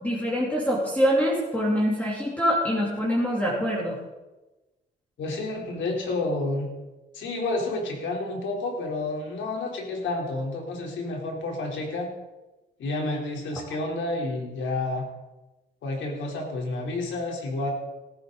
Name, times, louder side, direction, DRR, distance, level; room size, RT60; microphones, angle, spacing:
voice 1, 0.0-4.0, equal, 5° left, -4 dB, 3.1 m, -24 dB
voice 2, 5.2-6.7 7.1-12.1 12.8-15.0 15.8-17.7, left 2 dB, 75° left, 1 dB, 3.6 m, -30 dB
17.5 x 10.5 x 4.0 m, 1.1 s
cardioid pair, 90°, 20 cm